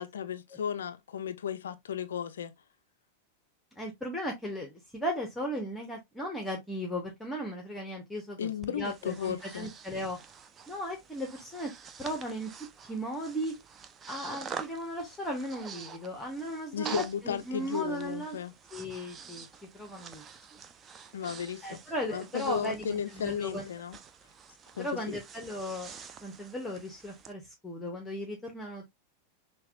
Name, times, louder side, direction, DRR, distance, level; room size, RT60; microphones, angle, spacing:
voice 1, 0.0-2.5 8.4-9.7 16.7-18.5 21.1-21.8 22.1-24.0 24.7-25.1, left 8 dB, 65° left, 0.3 m, -35 dB
voice 2, 3.8-10.2 10.7-11.7 12.0-12.5 12.8-13.5 14.1-18.4 18.7-19.4 19.7-20.2 21.6-23.6 24.8-25.9 26.2-28.8, equal, 5° left, 0.8 m, -36 dB
Breathing, 8.6-27.3, right 6 dB, 25° right, 0.4 m, -47 dB
5.6 x 2.2 x 2.4 m
figure-of-eight pair, 90°, 0 cm